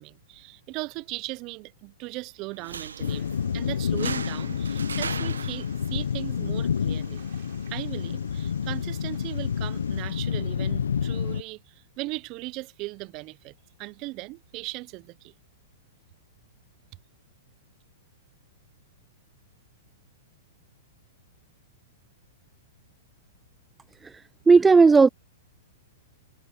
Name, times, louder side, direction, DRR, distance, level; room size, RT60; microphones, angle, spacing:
voice 1, 0.0-7.2 7.7-15.3, right 23 dB, 40° right, 0.9 m, -38 dB
sound 1, 2.5-9.5, right 6 dB, 90° right, 1.2 m, -41 dB
sound 2, 3.0-11.4, left 7 dB, 80° left, 1.0 m, -29 dB
sound 3, 3.0-10.0, right 13 dB, 65° right, 4.7 m, -57 dB
voice 2, 24.5-25.1, right 4 dB, 10° right, 0.3 m, -14 dB
hypercardioid pair, 115°, 0 cm